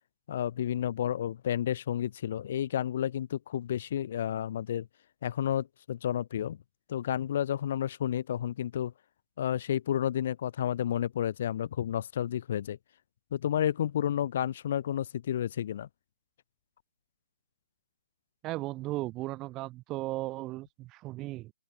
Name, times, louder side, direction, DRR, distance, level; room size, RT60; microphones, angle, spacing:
voice 1, 0.3-4.9 5.2-6.6 6.9-8.9 9.4-12.8 13.3-15.9, left 10 dB, 45° left, 0.4 m, -31 dB
voice 2, 18.4-21.5, right 18 dB, 20° right, 0.4 m, -36 dB
open air
hypercardioid pair, 145°, 0 cm